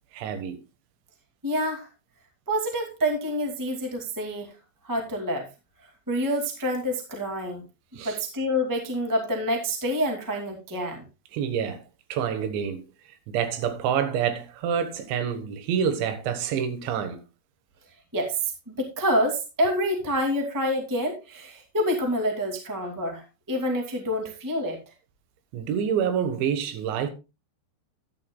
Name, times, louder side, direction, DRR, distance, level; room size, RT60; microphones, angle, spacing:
voice 1, 0.1-0.6 8.0-8.2 11.3-11.8 12.1-12.8 13.3-17.2 25.5-27.1, right 8 dB, 75° right, 3.6 m, -27 dB
voice 2, 1.4-1.9 2.5-4.5 4.8-5.5 6.1-7.6 7.9-11.0 18.1-24.8, equal, 30° right, 0.3 m, -27 dB
13.0 x 10.5 x 2.3 m
omnidirectional pair, 5.3 m